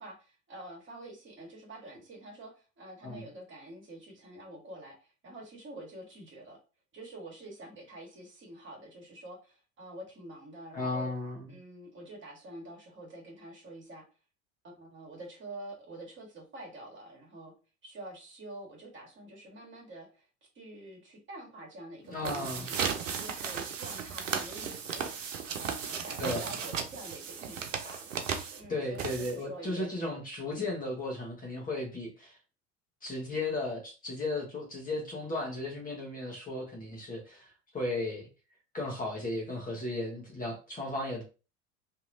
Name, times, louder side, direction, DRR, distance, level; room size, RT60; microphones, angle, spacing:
voice 1, 0.0-6.6 6.9-11.1 11.5-14.0 14.6-17.5 17.8-20.2 20.5-28.1 28.6-29.9 30.5-30.7, right 1 dB, 30° right, 0 dB, 1.5 m, -47 dB
voice 2, 10.7-11.5 22.1-22.7 26.2-26.4 28.7-32.3 33.0-37.5 37.7-38.3 38.7-41.2, left 2 dB, 20° left, -1 dB, 1.2 m, -35 dB
sound 1, 22.1-29.6, right 6 dB, 85° right, 0.6 m, -35 dB
2.8 x 2.7 x 2.6 m, 0.33 s
hypercardioid pair, 75°, 37 cm